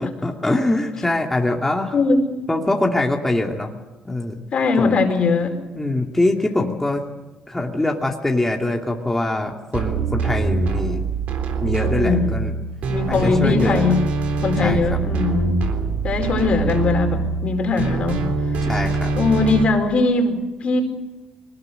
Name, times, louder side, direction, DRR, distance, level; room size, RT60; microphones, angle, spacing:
voice 1, 0.0-2.0 2.5-3.7 4.0-4.4 4.8-5.0 5.8-7.0 7.5-11.0 11.6-12.5 13.1-13.9 14.6-15.0 16.6-16.8 18.6-19.1, left 2 dB, 10° left, 1 dB, 2.6 m, -23 dB
voice 2, 1.9-2.4 4.5-5.6 12.0-12.4 12.9-14.0 14.4-15.6 16.0-18.2 18.5-18.6 19.1-20.8, left 4 dB, 50° left, 5 dB, 4.8 m, -20 dB
sound 1, 9.7-19.6, right 4 dB, 70° right, 3.7 m, -24 dB
22.0 x 19.5 x 8.0 m, 1.1 s
supercardioid pair, 70°, 2 cm